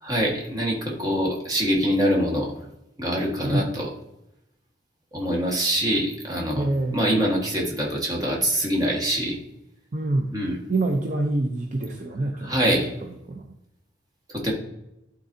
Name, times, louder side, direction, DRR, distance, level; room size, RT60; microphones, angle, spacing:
voice 1, 0.0-2.5 3.0-3.9 5.1-9.4 10.3-10.6 12.4-12.9 14.3-14.5, equal, 20° right, -2 dB, 1.5 m, -24 dB
voice 2, 3.4-3.7 6.6-7.2 9.9-10.4 10.7-13.5, right 2 dB, 45° right, 2 dB, 0.6 m, -27 dB
11.5 x 4.0 x 2.7 m, 0.87 s
head